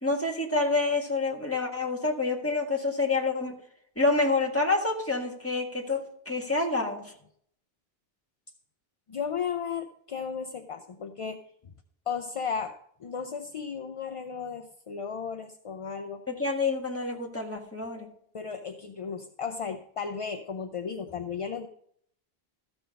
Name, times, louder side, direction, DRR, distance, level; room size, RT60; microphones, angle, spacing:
voice 1, 0.0-3.6 4.0-7.1 16.3-18.1, left 3 dB, 15° left, -1 dB, 1.5 m, -28 dB
voice 2, 9.1-11.4 12.1-16.2 18.3-21.7, left 6 dB, 45° left, 7 dB, 0.5 m, -35 dB
13.5 x 6.2 x 5.1 m, 0.67 s
omnidirectional pair, 1.0 m